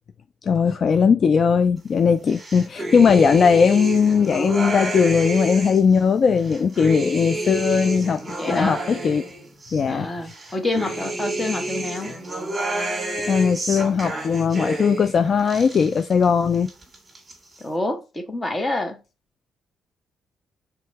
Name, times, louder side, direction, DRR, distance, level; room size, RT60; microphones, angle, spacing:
voice 1, 0.5-9.2 9.7-10.1 13.3-16.7, left 6 dB, 50° left, 0.3 m, -19 dB
sound 1, 2.3-5.9 6.4-9.8 10.3-15.1 15.4-16.3 16.5-17.3, right 2 dB, 20° right, 1.6 m, -29 dB
voice 2, 8.3-8.8 9.9-12.2 17.6-19.0, left 2 dB, 20° left, 1.0 m, -27 dB
3.5 x 2.8 x 4.5 m
cardioid pair, 90°, 0 cm